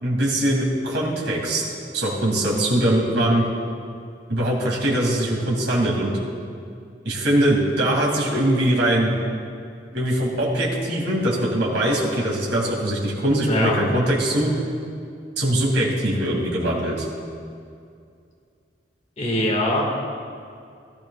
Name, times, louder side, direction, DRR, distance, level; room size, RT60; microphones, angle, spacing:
voice 1, 0.0-1.6 1.9-3.4 4.3-6.1 7.0-9.1 9.9-14.5 15.4-17.1, right 1 dB, 85° right, -4 dB, 2.8 m, -22 dB
voice 2, 19.2-19.8, left 1 dB, 40° left, -2 dB, 2.1 m, -22 dB
18.0 x 12.0 x 2.5 m, 2.4 s
head